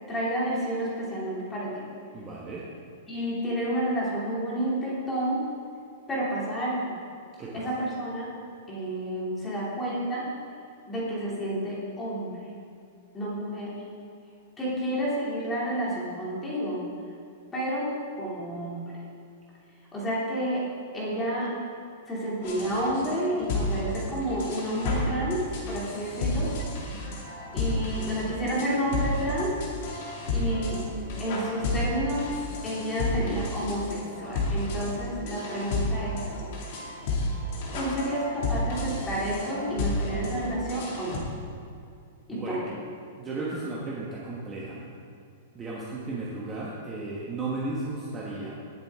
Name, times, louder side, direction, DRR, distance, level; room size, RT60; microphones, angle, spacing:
voice 1, 0.1-1.8 3.1-5.5 6.1-6.9 7.5-8.3 8.7-10.3 10.9-12.4 13.1-13.7 14.6-16.8 17.5-18.8 19.9-20.6 20.9-21.5 22.1-26.5 27.5-29.6 30.3-30.8 31.2-32.3 32.6-36.2 37.7-41.2 42.3-42.6, equal, 10° left, -7 dB, 2.6 m, -30 dB
voice 2, 2.1-2.6 7.4-7.6 42.3-42.6 43.1-44.8 45.5-48.5, right 2 dB, 15° right, -6 dB, 1.3 m, -34 dB
sound 1, 22.4-41.2, left 2 dB, 45° left, 2.4 m, -31 dB
18.0 x 7.6 x 3.6 m, 2.4 s
supercardioid pair, 170°, 0 cm